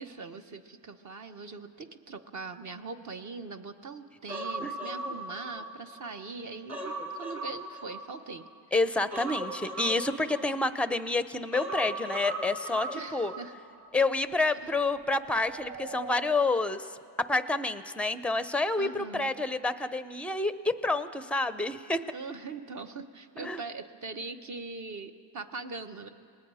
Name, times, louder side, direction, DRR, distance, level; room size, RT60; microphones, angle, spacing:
voice 1, 0.0-8.5 12.9-13.5 18.8-19.3 22.1-26.1, right 4 dB, 35° right, 8 dB, 1.3 m, -41 dB
Human voice, 4.3-6.1 6.4-8.5 9.1-10.9 11.5-13.4 13.7-13.9, right 2 dB, 15° right, 2.9 m, -37 dB
voice 2, 8.7-13.3 13.9-16.9 17.3-22.0 23.4-23.6, left 3 dB, ahead, 12 dB, 0.6 m, -28 dB
sound 1, 12.9-18.5, right 3 dB, 80° right, 2.0 m, -49 dB
28.5 x 19.5 x 4.9 m, 2.2 s
cardioid pair, 105°, 50 cm